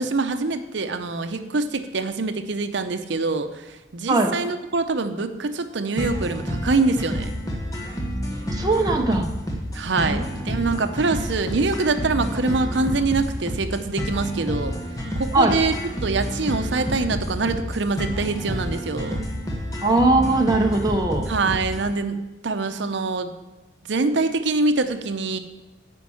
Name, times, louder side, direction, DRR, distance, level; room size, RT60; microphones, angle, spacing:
voice 1, 0.0-3.5 3.9-7.3 9.7-14.7 15.2-15.7 16.0-19.2 21.3-22.2 22.4-23.3 23.9-25.4, right 3 dB, 65° right, 8 dB, 0.7 m, -24 dB
sound 1, 6.0-21.9, equal, 20° left, 1.1 m, -29 dB
voice 2, 8.5-9.3 10.1-10.3 15.3-15.6 19.8-21.3, right 2 dB, 20° right, 1 dB, 0.7 m, -20 dB
9.2 x 5.3 x 7.0 m, 1.0 s
head